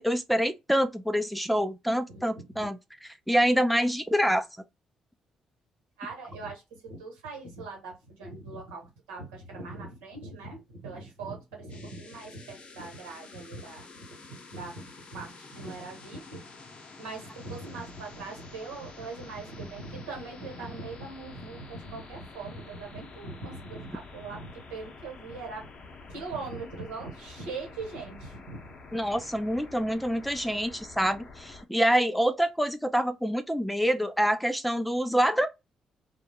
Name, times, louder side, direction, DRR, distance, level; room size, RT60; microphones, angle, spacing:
voice 1, 0.0-4.5 28.9-35.5, equal, ahead, 0.4 m, -26 dB
voice 2, 6.0-16.5 17.0-25.7 26.1-28.7 29.1-29.2, right 3 dB, 85° right, 1.1 m, -41 dB
sound 1, 11.7-31.6, left 4 dB, 55° left, 0.7 m, -48 dB
2.3 x 2.1 x 2.8 m
hypercardioid pair, 45°, 2 cm